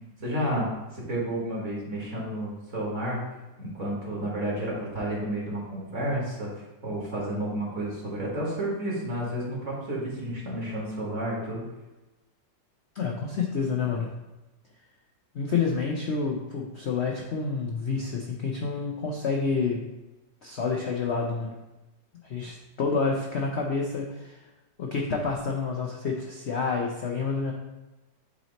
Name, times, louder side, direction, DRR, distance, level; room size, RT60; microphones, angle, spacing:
voice 1, 0.2-0.6 0.9-3.2 3.6-11.6, right 1 dB, 40° right, -4 dB, 1.9 m, -31 dB
voice 2, 12.9-14.2 15.3-19.9 20.4-21.6 22.2-24.4 24.8-27.5, left 4 dB, 70° left, 0 dB, 0.6 m, -28 dB
8.2 x 3.0 x 4.0 m, 1.1 s
omnidirectional pair, 2.0 m